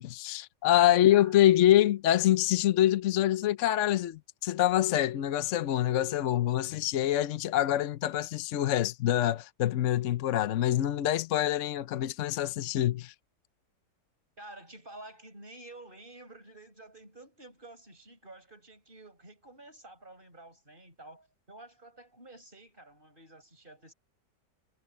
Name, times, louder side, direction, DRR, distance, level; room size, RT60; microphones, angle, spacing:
voice 1, 0.0-13.1, left 12 dB, 60° left, 0.8 m, -25 dB
voice 2, 0.9-1.4 14.4-23.9, right 2 dB, 30° right, 8.2 m, -50 dB
omnidirectional pair, 1.9 m